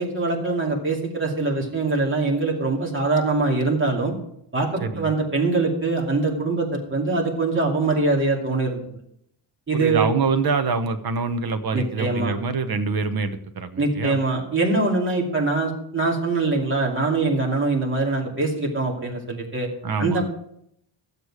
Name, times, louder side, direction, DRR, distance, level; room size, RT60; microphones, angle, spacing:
voice 1, 0.0-4.1 4.5-8.8 9.7-10.1 11.7-12.3 13.8-19.7 20.0-20.2, right 3 dB, 25° right, -2 dB, 2.6 m, -23 dB
voice 2, 9.7-14.2 19.8-20.2, right 4 dB, 50° right, 9 dB, 1.0 m, -25 dB
12.5 x 8.2 x 4.9 m, 0.74 s
wide cardioid pair, 130°, 48 cm